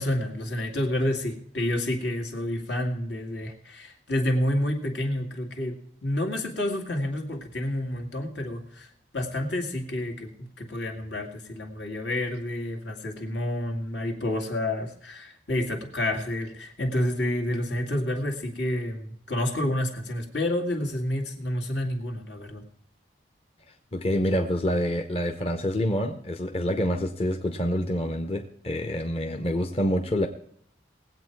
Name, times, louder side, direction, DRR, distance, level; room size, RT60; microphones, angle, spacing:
voice 1, 0.0-22.6, left 1 dB, 75° left, 3 dB, 2.2 m, -29 dB
voice 2, 23.9-30.3, equal, 35° left, 6 dB, 0.8 m, -27 dB
19.5 x 8.2 x 4.6 m, 0.67 s
head